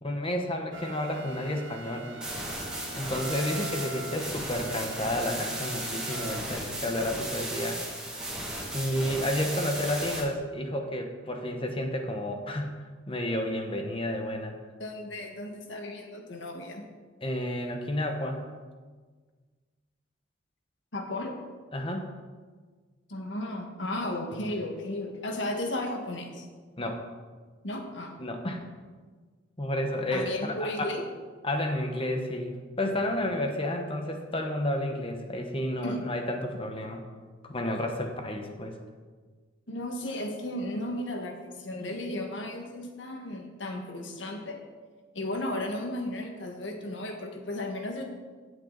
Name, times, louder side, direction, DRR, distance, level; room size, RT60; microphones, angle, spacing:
voice 1, 0.0-2.1 2.9-7.8 8.1-8.2 8.7-12.8 13.1-14.6 17.2-18.5 21.7-22.1 26.8-27.0 28.2-28.6 29.6-30.9 31.4-37.0 37.4-38.7, left 1 dB, 30° left, 4 dB, 1.2 m, -31 dB
sound 1, 0.7-6.9, right 1 dB, 80° right, 1.3 m, -42 dB
sound 2, 2.2-10.2, right 1 dB, 5° right, 2.3 m, -35 dB
voice 2, 14.8-16.9 20.9-21.3 23.1-26.5 27.6-28.2 30.1-31.0 35.8-36.0 39.7-44.6 45.1-48.2, left 1 dB, 70° left, 3 dB, 1.7 m, -34 dB
15.5 x 7.8 x 4.1 m, 1.5 s
head